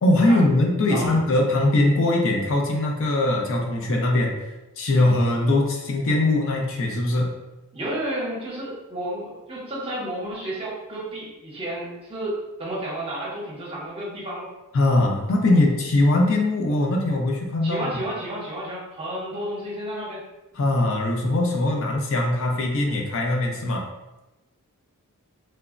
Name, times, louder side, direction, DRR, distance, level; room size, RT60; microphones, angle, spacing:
voice 1, 0.0-4.3 4.8-7.3 14.7-17.9 20.5-23.9, left 2 dB, 60° left, 1 dB, 0.4 m, -21 dB
voice 2, 7.7-14.5 15.5-15.6 17.6-20.2, right 1 dB, 25° right, -5 dB, 0.7 m, -31 dB
3.1 x 2.0 x 2.4 m, 0.99 s
head